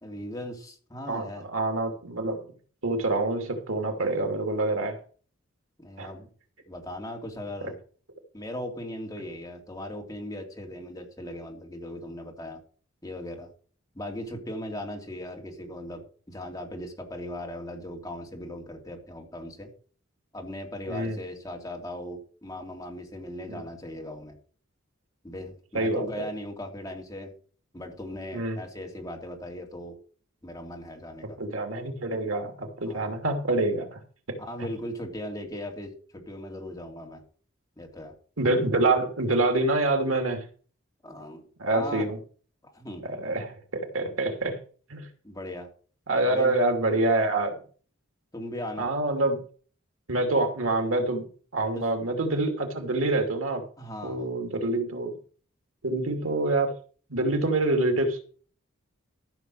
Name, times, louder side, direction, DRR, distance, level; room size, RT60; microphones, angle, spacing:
voice 1, 0.0-1.5 5.8-6.3 6.7-7.8 8.3-12.6 13.0-13.5 13.9-19.7 20.3-24.4 25.2-27.3 27.7-29.9 30.4-31.4 32.9-33.1 34.4-37.2 37.8-38.2 41.0-42.1 42.6-43.0 45.2-45.7 46.2-46.5 48.3-48.9 51.7-51.8 53.8-54.2, left 1 dB, 15° left, 1 dB, 3.0 m, -38 dB
voice 2, 1.1-2.4 2.8-5.0 6.0-6.1 20.9-21.2 23.5-23.6 25.7-26.1 28.3-28.6 31.4-34.0 34.3-34.4 38.4-40.4 41.6-42.2 43.0-44.6 44.9-45.1 46.1-47.6 48.8-49.4 50.1-51.2 51.5-53.6 54.0-55.2 55.8-56.7 57.1-58.2, right 2 dB, 80° right, 5 dB, 2.7 m, -26 dB
14.5 x 6.6 x 6.4 m, 0.42 s
head